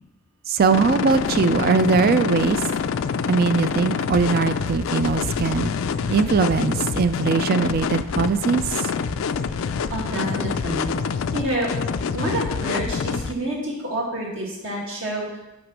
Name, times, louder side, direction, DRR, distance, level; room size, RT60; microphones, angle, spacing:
voice 1, 0.5-2.6 3.3-5.7 6.1-8.8, right 4 dB, 45° right, 11 dB, 0.4 m, -20 dB
sound 1, 0.7-13.3, left 6 dB, 70° left, 0.4 m, -26 dB
voice 2, 9.9-10.9 11.3-11.7 12.1-15.4, right 1 dB, 65° right, -3 dB, 2.1 m, -28 dB
6.2 x 5.1 x 6.1 m, 0.97 s
head